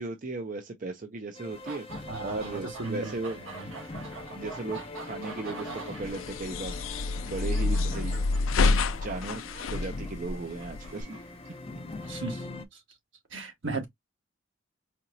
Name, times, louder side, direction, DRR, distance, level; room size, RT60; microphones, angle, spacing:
voice 1, 0.0-1.9 2.2-3.4 4.3-8.2 9.0-9.4 9.7-11.2, right 3 dB, 40° right, 0.5 m, -36 dB
sound 1, 1.3-12.6, left 3 dB, 30° left, 0.5 m, -43 dB
sound 2, 1.5-12.1, right 4 dB, 90° right, 1.6 m, -46 dB
voice 2, 2.1-3.2 3.4-3.7 12.0-12.5 13.3-13.9, right 3 dB, 70° right, 1.5 m, -35 dB
sound 3, 6.0-11.0, left 3 dB, 90° left, 0.5 m, -28 dB
4.3 x 2.9 x 2.6 m
head